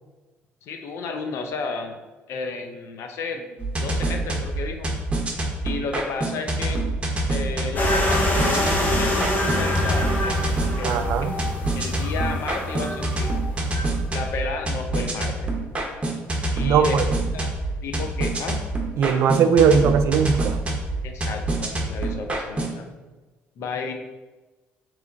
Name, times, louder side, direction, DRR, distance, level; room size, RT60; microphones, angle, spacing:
voice 1, 0.6-2.0 2.3-4.9 5.6-6.9 7.3-10.4 10.8-11.1 11.7-13.3 14.1-15.5 16.5-17.0 17.3-17.5 17.8-18.6 21.0-22.9 23.6-23.9, left 4 dB, 70° left, 5 dB, 0.6 m, -32 dB
sound 1, 3.6-22.8, right 2 dB, 25° right, 0.8 m, -27 dB
bright wind, 7.8-13.9, left 1 dB, 40° left, 1.0 m, -25 dB
voice 2, 10.8-11.3 16.6-17.0 19.0-20.6, right 6 dB, 65° right, 10 dB, 0.3 m, -19 dB
3.6 x 3.2 x 3.8 m, 1.2 s
cardioid pair, 95°, 5 cm